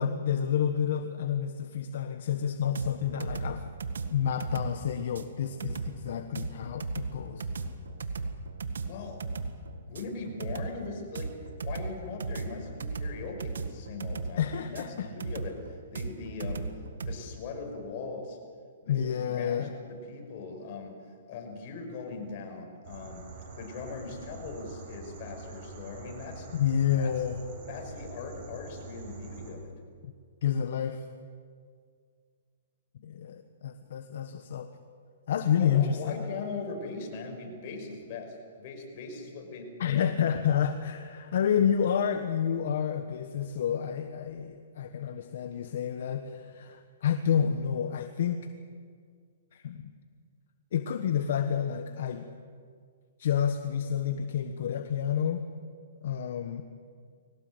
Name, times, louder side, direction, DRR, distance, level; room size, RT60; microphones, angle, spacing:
voice 1, 0.0-3.6 4.1-7.4 14.4-15.1 18.9-19.7 26.5-27.4 30.0-30.1 30.4-31.1 33.0-34.7 35.3-36.2 39.8-48.5 49.5-49.9 50.7-52.3 53.2-55.4 56.0-56.6, left 8 dB, 60° left, 7 dB, 1.3 m, -29 dB
sound 1, 2.7-17.2, right 4 dB, 90° right, 1.8 m, -36 dB
voice 2, 8.9-9.2 9.9-11.4 11.6-18.4 18.8-21.0 21.3-23.3 23.6-26.5 27.0-27.2 27.6-29.8 35.6-40.0 40.3-40.5, left 4 dB, 40° left, 3 dB, 5.7 m, -40 dB
sound 2, 22.8-29.5, right 3 dB, 45° right, 5.5 m, -45 dB
22.0 x 18.5 x 8.0 m, 2.1 s
hypercardioid pair, 155°, 0 cm